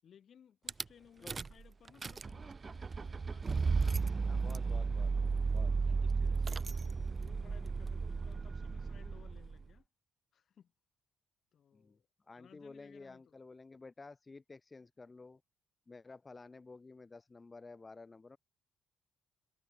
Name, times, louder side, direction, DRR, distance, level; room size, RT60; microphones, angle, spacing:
voice 1, 0.0-4.3 5.4-9.9 10.3-10.7 11.5-12.1 12.4-13.3, left 8 dB, 60° left, 7.3 m, -62 dB
Rattle / Car / Engine starting, 0.7-0.8 1.3-1.6 1.9-9.6, right 4 dB, 35° right, 0.8 m, -34 dB
voice 2, 4.3-5.1 5.5-5.7 11.7-12.0 12.2-15.4 15.9-18.4, left 3 dB, 25° left, 2.1 m, -52 dB
cardioid pair, 90°, 0 cm